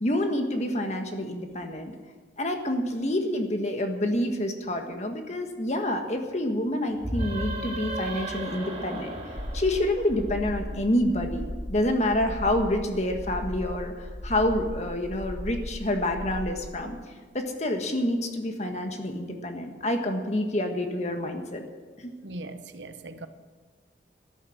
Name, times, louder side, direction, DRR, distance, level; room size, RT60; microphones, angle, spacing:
voice 1, 0.0-1.9 2.4-9.1 9.5-11.4 11.7-17.0 17.3-21.6 22.0-22.1, left 1 dB, 40° left, 5 dB, 1.6 m, -28 dB
sound 1, 7.0-10.6, right 1 dB, 35° right, 3.8 m, -34 dB
sound 2, 9.3-16.5, left 1 dB, 75° left, 3.3 m, -36 dB
voice 2, 22.2-23.3, right 2 dB, 75° right, 9 dB, 1.0 m, -39 dB
13.0 x 11.0 x 7.8 m, 1.4 s
head